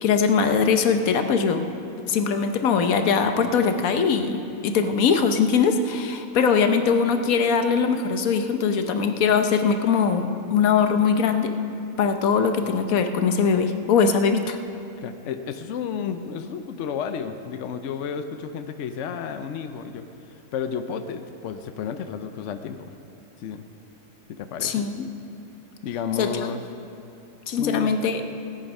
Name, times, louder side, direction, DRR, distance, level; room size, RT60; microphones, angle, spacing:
voice 1, 0.0-1.7 2.1-11.5 12.0-14.6 24.6-24.9 26.2-26.3 27.5-28.2, left 6 dB, 80° left, 7 dB, 1.2 m, -21 dB
voice 2, 15.0-22.9 23.4-23.6 24.3-24.9 25.8-26.6 27.6-27.9, left 7 dB, 65° left, 8 dB, 0.9 m, -32 dB
17.5 x 9.0 x 5.4 m, 2.7 s
omnidirectional pair, 1.4 m